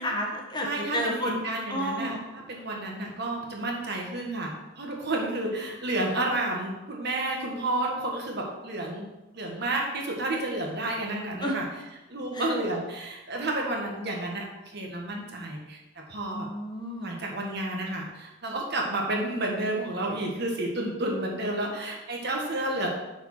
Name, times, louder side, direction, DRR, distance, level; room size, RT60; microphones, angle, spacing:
voice 1, 0.0-1.4 1.7-2.2 11.4-11.6 12.3-12.4 16.3-17.2, equal, 20° left, 0 dB, 1.2 m, -31 dB
voice 2, 0.6-11.7 12.1-14.5 14.7-16.5 17.0-22.9, right 2 dB, 55° right, 0 dB, 1.5 m, -31 dB
6.5 x 4.9 x 6.1 m, 1.0 s
head